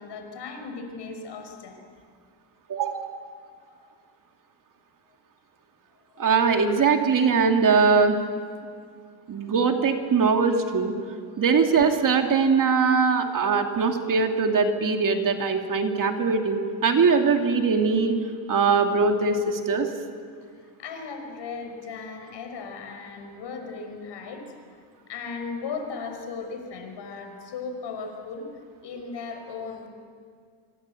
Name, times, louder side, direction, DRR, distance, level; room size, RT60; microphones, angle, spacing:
voice 1, 0.0-1.8 3.7-3.9 6.1-6.2 13.0-13.1 20.6-24.8 25.1-28.5 28.8-29.9, left 4 dB, 55° left, 5 dB, 5.5 m, -37 dB
voice 2, 2.7-3.2 6.2-8.2 9.3-10.9 11.4-18.2 18.5-19.9, right 5 dB, 40° right, 4 dB, 2.6 m, -21 dB
25.0 x 24.5 x 8.3 m, 2.1 s
cardioid pair, 120°, 49 cm